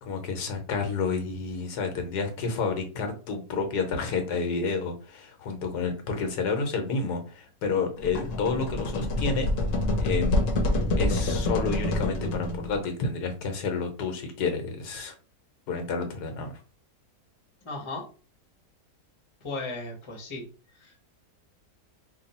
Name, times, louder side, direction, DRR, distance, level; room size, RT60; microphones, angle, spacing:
voice 1, 0.0-9.5 10.0-10.4 11.0-15.1 15.7-16.5, left 4 dB, 90° left, 5 dB, 1.5 m, -30 dB
sound 1, 8.0-12.9, left 1 dB, 60° left, 1.0 m, -27 dB
voice 2, 17.6-18.0 19.4-20.4 20.8-21.1, left 2 dB, 25° left, 1 dB, 0.8 m, -36 dB
3.4 x 2.3 x 4.0 m, 0.36 s
omnidirectional pair, 1.7 m